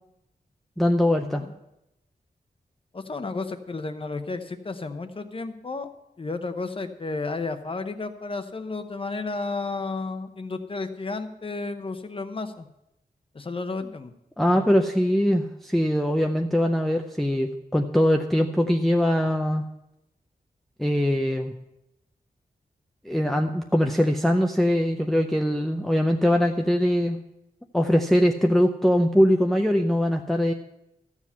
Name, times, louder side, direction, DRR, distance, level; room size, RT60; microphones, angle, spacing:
voice 1, 0.8-1.4 14.4-19.6 20.8-21.5 23.1-27.2 27.7-30.5, equal, ahead, 3 dB, 0.5 m, -22 dB
voice 2, 2.9-5.9 6.2-12.7 13.3-14.1 14.5-14.7, left 3 dB, 35° left, 8 dB, 0.8 m, -32 dB
13.5 x 7.4 x 5.5 m, 0.87 s
wide cardioid pair, 145°, 16 cm